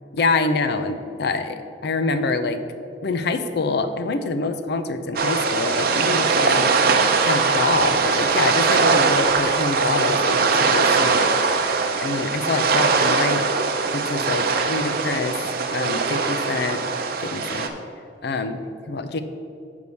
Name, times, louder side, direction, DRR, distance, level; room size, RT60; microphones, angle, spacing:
voice 1, 0.1-2.6 3.0-6.7 7.2-11.3 12.0-13.5 13.9-15.4 15.7-16.9 17.2-17.7 18.2-19.2, left 3 dB, 65° left, 9 dB, 0.5 m, -25 dB
sound 1, 5.2-17.7, right 4 dB, 55° right, 0.7 m, -21 dB
6.9 x 4.7 x 6.9 m, 2.5 s
head